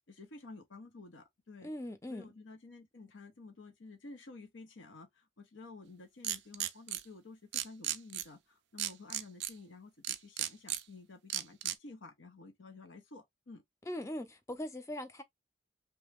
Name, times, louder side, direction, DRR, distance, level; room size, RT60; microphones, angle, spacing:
voice 1, 0.1-1.7 2.1-13.6, left 3 dB, 80° left, 0.7 m, -52 dB
voice 2, 1.6-2.3 13.8-15.2, left 1 dB, 15° left, 0.4 m, -40 dB
sound 1, 6.2-7.0 7.5-8.2 8.8-9.5 10.0-10.8 11.3-11.7, right 12 dB, 60° right, 0.4 m, -34 dB
3.0 x 2.1 x 3.4 m
head